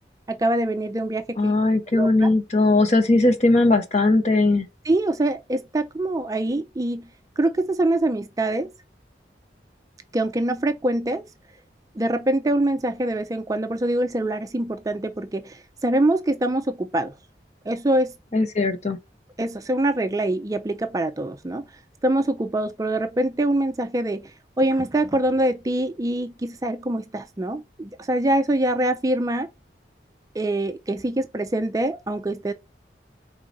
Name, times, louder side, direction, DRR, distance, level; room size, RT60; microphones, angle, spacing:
voice 1, 0.3-1.5 1.9-2.3 4.9-7.1 7.4-8.7 10.1-11.2 12.0-17.1 17.7-18.1 19.4-21.6 22.0-24.3 24.6-29.5 30.4-32.5, right 1 dB, 20° right, 0.4 m, -24 dB
voice 2, 1.4-4.7 18.3-19.0, left 2 dB, 40° left, 1.0 m, -19 dB
4.8 x 3.8 x 2.7 m
head